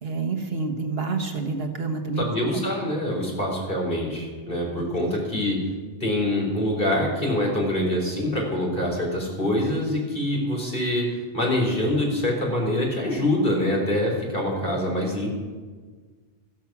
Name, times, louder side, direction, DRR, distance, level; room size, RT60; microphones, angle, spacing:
voice 1, 0.0-2.3 2.5-2.6, right 4 dB, 60° right, 3 dB, 1.6 m, -28 dB
voice 2, 2.2-5.6 6.0-11.1 11.3-15.3, left 1 dB, 50° left, -1 dB, 4.1 m, -25 dB
14.0 x 14.0 x 6.0 m, 1.5 s
omnidirectional pair, 1.2 m